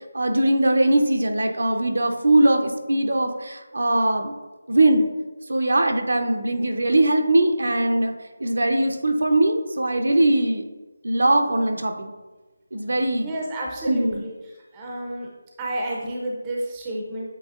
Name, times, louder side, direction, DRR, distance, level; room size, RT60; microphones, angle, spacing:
voice 1, 0.1-4.3 4.7-5.1 5.5-8.1 8.4-10.7 11.0-12.1 12.7-13.3 13.8-14.2, right 1 dB, 75° right, 5 dB, 0.6 m, -21 dB
voice 2, 13.0-14.3 14.7-15.3 15.6-17.3, right 1 dB, 15° right, -3 dB, 0.5 m, -31 dB
7.7 x 2.8 x 2.4 m, 1.2 s
figure-of-eight pair, 170°, 0 cm